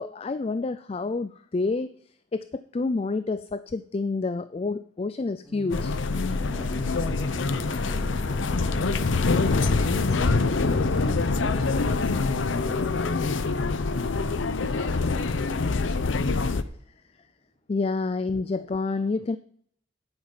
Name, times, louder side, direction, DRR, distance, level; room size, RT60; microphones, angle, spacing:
voice 1, 0.0-1.9 2.3-6.0 17.7-19.4, left 3 dB, 30° left, 13 dB, 0.3 m, -28 dB
sound 1, 5.4-14.1, left 2 dB, 5° left, 3.5 m, -37 dB
sound 2, 5.7-16.6, left 3 dB, 75° left, 0.7 m, -25 dB
voice 2, 9.1-17.2, right 1 dB, 50° left, -1 dB, 3.8 m, -46 dB
9.7 x 8.8 x 5.6 m, 0.66 s
head